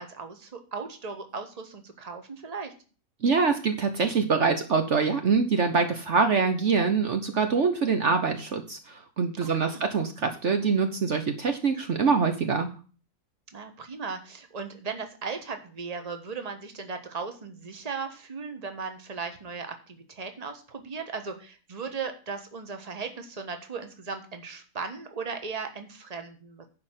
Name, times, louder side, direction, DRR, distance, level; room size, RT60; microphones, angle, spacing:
voice 1, 0.0-2.7 9.4-9.8 13.5-26.7, right 5 dB, 30° right, 6 dB, 1.4 m, -37 dB
voice 2, 3.2-12.7, right 5 dB, 60° right, 7 dB, 1.3 m, -24 dB
11.0 x 5.0 x 7.4 m, 0.37 s
omnidirectional pair, 1.5 m